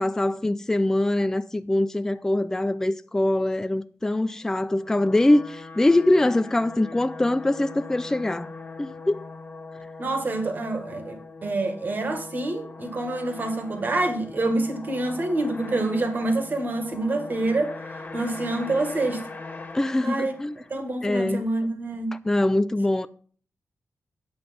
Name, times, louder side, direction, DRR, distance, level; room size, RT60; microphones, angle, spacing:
voice 1, 0.0-9.2 19.7-20.5 21.0-21.4 22.2-23.1, left 1 dB, 10° left, 0.4 m, -23 dB
sound 1, 4.6-20.9, left 3 dB, 35° left, 1.9 m, -41 dB
voice 2, 10.0-17.8 18.1-19.3 20.0-20.3 20.7-22.1, right 2 dB, 35° right, 1.9 m, -27 dB
9.5 x 8.0 x 5.3 m
wide cardioid pair, 160°, 5 cm